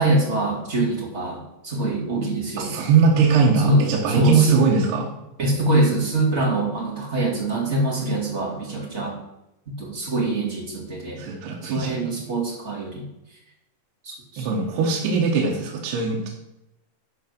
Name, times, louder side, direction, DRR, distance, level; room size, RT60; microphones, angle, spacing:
voice 1, 0.0-2.7 3.6-3.8 4.1-4.6 5.4-9.2 9.8-11.2 11.6-13.0 14.0-14.5, right 1 dB, 25° right, -2 dB, 1.9 m, -24 dB
voice 2, 2.6-5.1 11.2-12.1 14.4-16.3, right 5 dB, 80° right, -1 dB, 3.5 m, -20 dB
12.5 x 5.0 x 6.0 m, 0.88 s
omnidirectional pair, 4.5 m